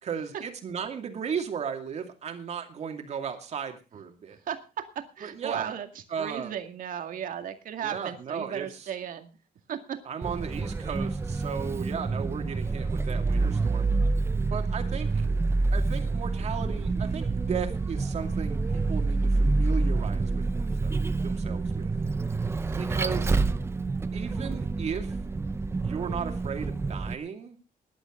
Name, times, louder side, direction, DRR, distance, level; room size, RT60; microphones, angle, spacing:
voice 1, 0.0-4.4 5.2-5.7 6.1-6.5 7.8-8.9 10.1-13.9 14.5-15.2 15.7-21.9 22.7-23.4 24.1-25.2 25.8-27.6, right 7 dB, 45° right, 6 dB, 2.5 m, -36 dB
voice 2, 5.0-9.3 9.7-10.0, right 9 dB, 65° right, 7 dB, 2.1 m, -35 dB
Vehicle, 10.2-27.1, right 3 dB, 15° right, 0.7 m, -27 dB
18.5 x 11.5 x 3.8 m, 0.31 s
wide cardioid pair, 180°, 15 cm